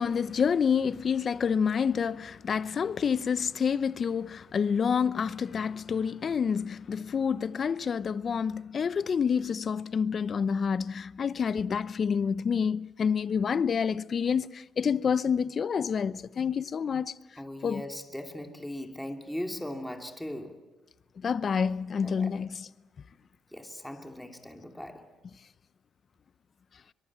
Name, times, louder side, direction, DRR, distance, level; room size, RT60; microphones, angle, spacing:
voice 1, 0.0-17.1 17.6-17.8 21.2-22.7, left 6 dB, 50° left, 0.7 m, -28 dB
voice 2, 17.4-20.6 22.0-22.3 23.5-25.1, left 1 dB, 5° left, 2.8 m, -39 dB
23.5 x 22.5 x 8.9 m
cardioid pair, 90°, 0 cm